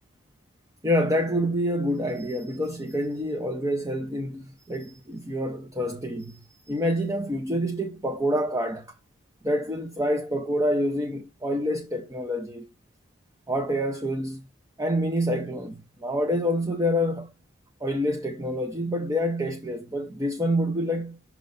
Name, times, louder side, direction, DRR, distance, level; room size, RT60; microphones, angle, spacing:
voice 1, 0.8-6.4 6.7-8.9 9.4-12.7 13.5-14.4 14.8-17.3 17.8-21.2, equal, 15° right, 0.6 m, -27 dB
6.5 x 3.1 x 5.4 m
head